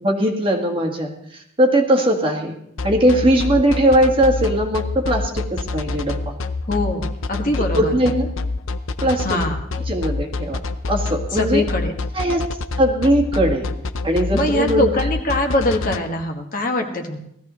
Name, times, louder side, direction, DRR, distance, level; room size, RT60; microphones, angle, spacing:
voice 1, 0.0-2.6 2.8-6.2 7.5-8.3 9.0-9.4 9.9-10.6 10.9-11.6 12.1-12.4 12.8-13.7 14.0-14.9, right 1 dB, 25° right, 1 dB, 1.7 m, -19 dB
sound 1, 2.8-16.0, left 3 dB, 85° left, 0.7 m, -26 dB
voice 2, 6.7-7.9 9.2-9.6 11.3-11.9 14.3-17.2, left 1 dB, 45° left, 2 dB, 1.6 m, -22 dB
19.0 x 14.5 x 3.1 m, 0.74 s
head